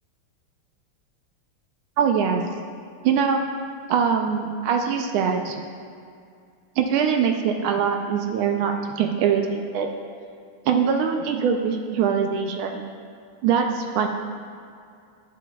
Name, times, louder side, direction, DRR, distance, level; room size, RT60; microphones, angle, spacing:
voice 1, 2.0-2.4 3.0-3.4 3.9-5.6 6.8-9.9 10.7-12.8 13.4-14.1, right 7 dB, 75° right, 4 dB, 1.3 m, -22 dB
9.9 x 7.3 x 2.3 m, 2.3 s
omnidirectional pair, 2.4 m